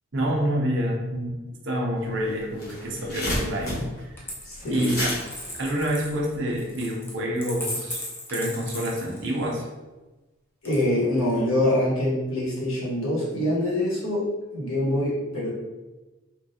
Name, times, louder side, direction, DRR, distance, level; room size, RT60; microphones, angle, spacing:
voice 1, 0.1-1.4 1.6-4.2 4.7-5.2 5.5-8.0 8.3-9.7, equal, 55° right, -1 dB, 0.7 m, -27 dB
sound 1, 2.0-2.1 2.4-6.6, left 1 dB, 45° left, 1.0 m, -32 dB
Coin (dropping), 4.2-9.6 10.6-11.4, left 1 dB, 10° left, 0.4 m, -37 dB
voice 2, 4.4-4.9 10.6-14.3 14.5-15.5, left 1 dB, 70° left, -6 dB, 1.3 m, -25 dB
3.7 x 2.3 x 2.8 m, 1.1 s
head